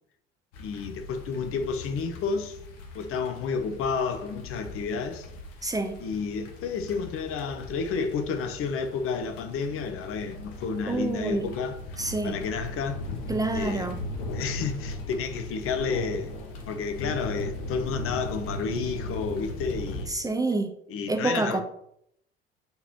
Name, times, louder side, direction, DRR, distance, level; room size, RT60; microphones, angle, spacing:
sound 1, 0.5-20.1, left 1 dB, 65° left, 1.2 m, -38 dB
voice 1, 0.6-2.6 2.9-5.3 6.0-11.8 12.2-13.0 13.5-14.0 14.3-16.4 16.7-20.1 20.9-21.6, left 5 dB, 45° left, 0.9 m, -31 dB
voice 2, 5.6-6.0 10.9-11.5 12.0-12.4 13.3-14.0 20.1-20.7 21.1-21.6, right 2 dB, 10° right, 0.6 m, -27 dB
8.5 x 4.0 x 2.9 m
figure-of-eight pair, 60°, 30 cm